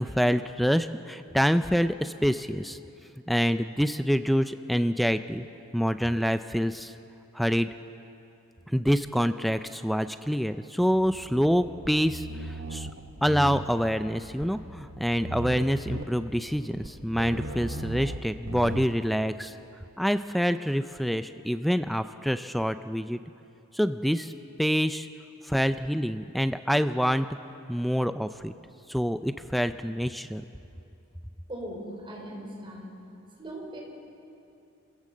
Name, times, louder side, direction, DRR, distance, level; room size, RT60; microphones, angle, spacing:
voice 1, 0.0-2.8 3.3-5.4 5.7-6.9 7.3-7.7 8.7-12.9 13.2-19.5 20.0-23.2 23.7-24.3 24.6-25.1 25.4-27.3 27.7-28.5 28.9-30.4, equal, ahead, 10 dB, 0.4 m, -26 dB
sound 1, 10.9-18.9, right 2 dB, 65° right, 1.0 m, -38 dB
voice 2, 31.5-32.9 33.4-33.8, right 1 dB, 25° right, -1 dB, 4.6 m, -39 dB
27.5 x 16.5 x 7.4 m, 2.8 s
head